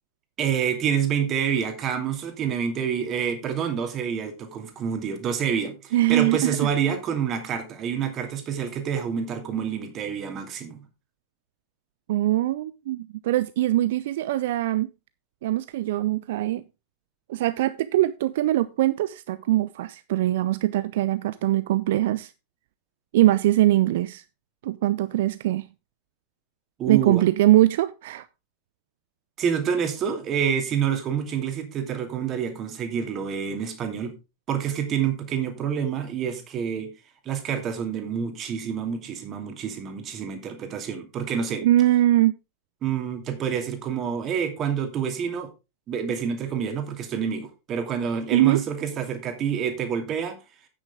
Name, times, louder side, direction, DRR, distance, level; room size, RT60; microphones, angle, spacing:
voice 1, 0.4-10.8 26.8-27.2 29.4-34.1 34.5-36.9 37.2-41.7 42.8-45.5 45.9-50.4, right 7 dB, 30° right, 2.6 m, -27 dB
voice 2, 5.9-6.6 12.1-14.9 15.4-16.6 17.3-22.3 23.1-24.2 24.6-25.7 26.9-28.3 41.6-42.3 48.3-48.6, right 14 dB, 55° right, 0.4 m, -22 dB
9.9 x 9.0 x 3.6 m
figure-of-eight pair, 90°, 0 cm